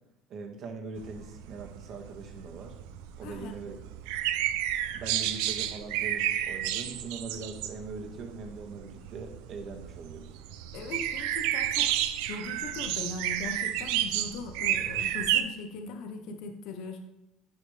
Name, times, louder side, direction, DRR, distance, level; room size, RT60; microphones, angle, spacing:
voice 1, 0.3-2.8 3.2-3.8 4.9-10.3, right 4 dB, 55° right, 3 dB, 1.8 m, -41 dB
sound 1, 1.0-15.4, right 12 dB, 80° right, 0.5 m, -31 dB
voice 2, 3.2-3.6 10.7-17.0, left 4 dB, 70° left, 5 dB, 1.0 m, -40 dB
10.0 x 6.5 x 3.4 m, 0.91 s
hypercardioid pair, 80°, 0 cm